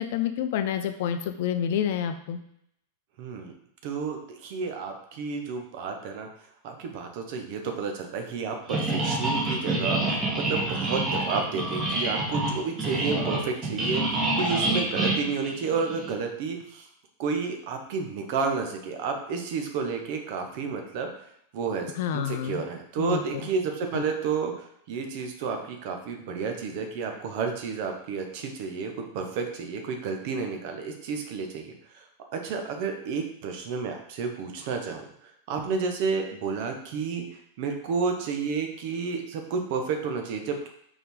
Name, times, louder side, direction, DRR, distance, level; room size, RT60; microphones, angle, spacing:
voice 1, 0.0-2.4 21.9-22.6 23.0-23.2 23.9-24.0, left 9 dB, 50° left, 8 dB, 0.6 m, -28 dB
voice 2, 3.2-3.5 3.8-4.2 4.4-6.3 6.6-10.0 10.5-14.0 14.4-16.9 17.2-21.1 21.5-31.7 32.3-37.2 37.6-40.7, right 5 dB, 50° right, 4 dB, 1.1 m, -31 dB
sound 1, 8.7-16.1, right 2 dB, 25° right, 1.9 m, -27 dB
5.4 x 4.7 x 3.7 m, 0.73 s
figure-of-eight pair, 90°, 0 cm